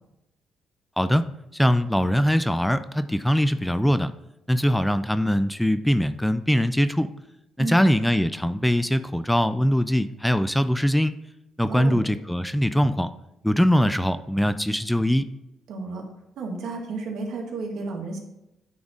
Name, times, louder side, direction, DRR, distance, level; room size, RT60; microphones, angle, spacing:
voice 1, 1.5-4.1 4.5-7.1 7.6-11.1 11.6-13.1 13.4-15.3, equal, 5° left, 12 dB, 0.4 m, -22 dB
voice 2, 11.7-12.0 15.7-16.0 16.4-18.2, right 3 dB, 75° right, 1 dB, 1.8 m, -32 dB
9.4 x 4.0 x 4.9 m, 0.88 s
cardioid pair, 90°, 0 cm